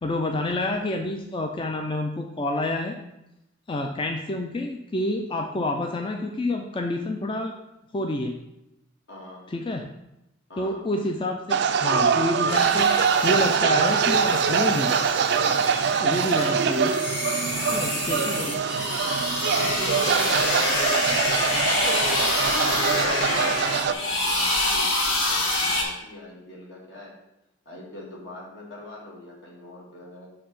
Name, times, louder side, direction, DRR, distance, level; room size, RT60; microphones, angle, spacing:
voice 1, 0.0-3.0 3.7-7.6 7.9-8.4 9.5-9.9 10.6-12.9 13.2-14.9 16.0-17.0 17.7-18.6, left 2 dB, 25° left, 3 dB, 0.4 m, -28 dB
voice 2, 9.1-9.5 10.5-10.9 15.8-16.2 17.6-19.1 19.5-22.4 22.8-27.2 27.7-30.3, left 1 dB, 60° left, -3 dB, 1.8 m, -41 dB
sound 1, 11.5-23.9, right 6 dB, 55° right, 0.3 m, -23 dB
sound 2, 12.5-25.8, left 2 dB, 80° left, 1.6 m, -27 dB
6.6 x 3.3 x 5.3 m, 0.88 s
head